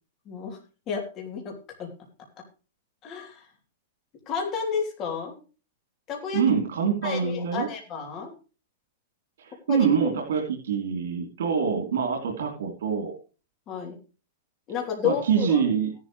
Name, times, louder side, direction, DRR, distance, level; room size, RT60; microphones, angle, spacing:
voice 1, 0.2-0.6 0.9-1.5 1.8-1.9 3.0-3.5 4.3-5.4 6.1-6.4 7.0-8.3 9.7-10.1 13.7-14.0 14.7-15.6, left 6 dB, 20° left, 1 dB, 3.1 m, -31 dB
voice 2, 6.3-7.7 9.4-13.2 15.0-15.9, right 6 dB, 90° right, 1 dB, 3.2 m, -25 dB
15.0 x 11.0 x 3.2 m, 0.34 s
supercardioid pair, 180°, 0 cm